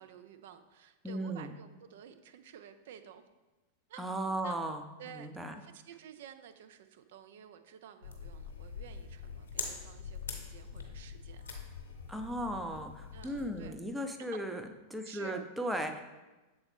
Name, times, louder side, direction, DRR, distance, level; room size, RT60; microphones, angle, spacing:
voice 1, 0.0-3.3 3.9-4.0 4.4-4.6 5.0-5.3 5.6-11.5 13.1-13.8 14.3-14.4 15.0-15.5, right 9 dB, 55° right, 9 dB, 0.4 m, -52 dB
voice 2, 1.0-1.5 4.0-5.5 12.1-14.6 14.9-16.0, right 1 dB, 5° right, 5 dB, 0.5 m, -36 dB
sound 1, 8.0-13.7, left 5 dB, 65° left, 0.9 m, -44 dB
7.0 x 4.0 x 3.4 m, 1.1 s
figure-of-eight pair, 90°, 0 cm